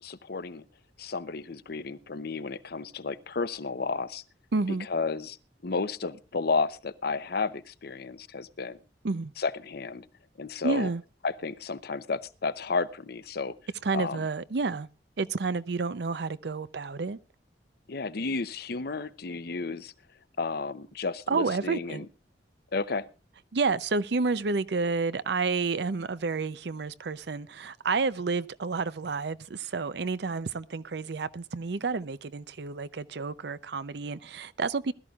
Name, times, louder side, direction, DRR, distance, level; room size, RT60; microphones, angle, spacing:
voice 1, 0.0-0.6 1.0-4.2 4.9-5.4 5.6-8.8 9.4-10.0 10.4-10.9 11.2-13.5 13.9-14.2 17.9-19.9 20.4-22.1 22.7-23.1, left 4 dB, 60° left, 0.7 m, -32 dB
voice 2, 4.5-4.9 9.0-9.3 10.6-11.0 13.8-14.9 15.2-17.2 21.3-22.1 23.5-34.9, right 4 dB, 70° right, 0.6 m, -30 dB
20.5 x 13.0 x 2.4 m
head